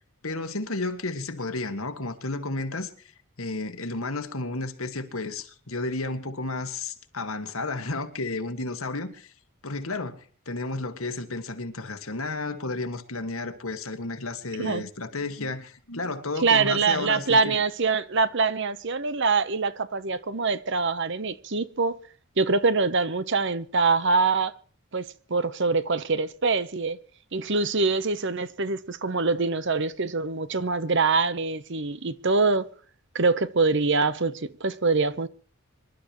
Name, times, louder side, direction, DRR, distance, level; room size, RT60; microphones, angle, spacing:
voice 1, 0.2-3.1 3.4-9.3 9.6-17.5, left 3 dB, 70° left, 1.9 m, -32 dB
voice 2, 16.4-22.0 22.4-24.5 24.9-27.0 27.3-32.7 33.1-35.3, right 4 dB, 55° right, 1.0 m, -24 dB
26.0 x 12.0 x 3.1 m
head